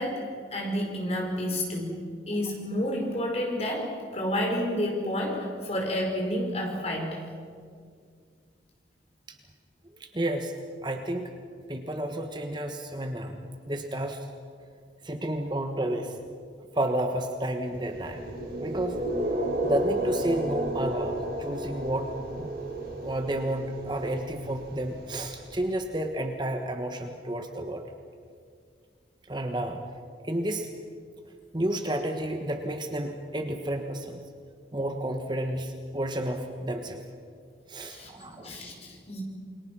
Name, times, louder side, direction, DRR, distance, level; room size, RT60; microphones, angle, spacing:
voice 1, 0.0-1.9 2.3-7.2 37.8-39.2, equal, 35° left, 0 dB, 5.0 m, -30 dB
voice 2, 9.9-10.5 10.8-11.3 11.7-13.4 13.7-14.3 15.0-16.2 16.7-18.2 18.6-19.0 19.6-22.1 22.4-22.5 23.0-27.8 29.3-29.8 30.2-30.7 31.5-34.2 34.7-37.0 37.7-38.5, right 1 dB, 25° right, 5 dB, 1.3 m, -31 dB
sound 1, 17.7-25.8, right 1 dB, 60° right, 6.4 m, -33 dB
28.5 x 22.5 x 6.2 m, 2.1 s
head